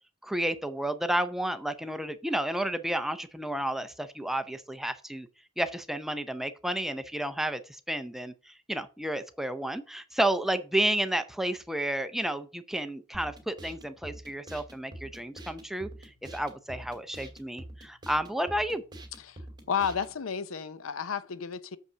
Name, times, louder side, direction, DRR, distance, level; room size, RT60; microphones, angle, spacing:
voice 1, 0.2-5.3 5.6-7.6 7.9-15.9 16.3-18.8, right 1 dB, ahead, 0.6 m, -31 dB
sound 1, 13.1-20.2, right 1 dB, 20° right, 2.3 m, -46 dB
voice 2, 19.2-21.8, left 6 dB, 85° left, 0.7 m, -32 dB
6.8 x 5.3 x 7.2 m
head